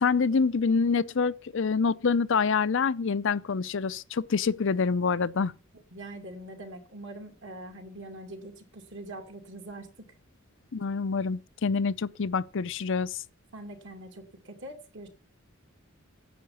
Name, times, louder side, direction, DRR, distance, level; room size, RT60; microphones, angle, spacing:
voice 1, 0.0-5.5 10.7-13.2, left 5 dB, 65° left, 0.6 m, -26 dB
voice 2, 5.9-9.9 13.5-15.1, right 1 dB, 60° right, 2.7 m, -43 dB
10.5 x 7.9 x 7.2 m
head